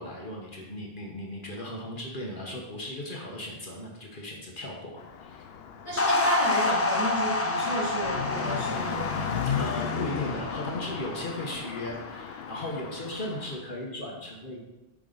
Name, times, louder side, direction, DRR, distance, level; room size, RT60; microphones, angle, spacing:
voice 1, 0.0-4.9 5.2-5.5 9.6-14.6, left 1 dB, 55° left, -1 dB, 1.4 m, -36 dB
Car passing by, 5.0-13.5, left 7 dB, 75° left, 0.8 m, -35 dB
voice 2, 5.8-9.3, right 1 dB, 35° right, -6 dB, 2.0 m, -32 dB
sound 1, 6.0-12.5, left 2 dB, 25° left, 0.3 m, -29 dB
7.6 x 5.0 x 3.9 m, 0.99 s
omnidirectional pair, 1.0 m